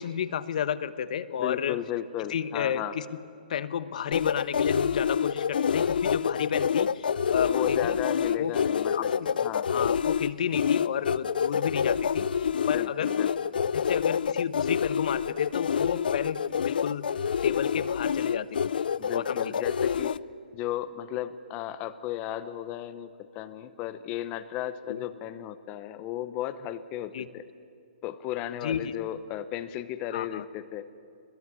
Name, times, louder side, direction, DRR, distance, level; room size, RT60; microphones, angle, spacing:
voice 1, 0.0-1.8 2.3-3.0 3.5-8.0 8.4-8.5 8.9-9.3 9.7-13.1 13.7-18.7 19.1-19.7 24.9-25.0 27.1-27.3 28.6-28.9 30.1-30.4, left 8 dB, 50° left, 14 dB, 1.1 m, -32 dB
voice 2, 1.4-2.9 7.5-9.1 9.4-9.7 12.7-13.3 19.0-20.1 20.5-23.1 23.3-27.4 28.0-30.8, left 12 dB, 20° left, 13 dB, 0.8 m, -35 dB
sound 1, 4.1-20.2, left 7 dB, 70° left, 0.6 m, -27 dB
23.5 x 21.5 x 9.7 m, 2.5 s
hypercardioid pair, 165°, 5 cm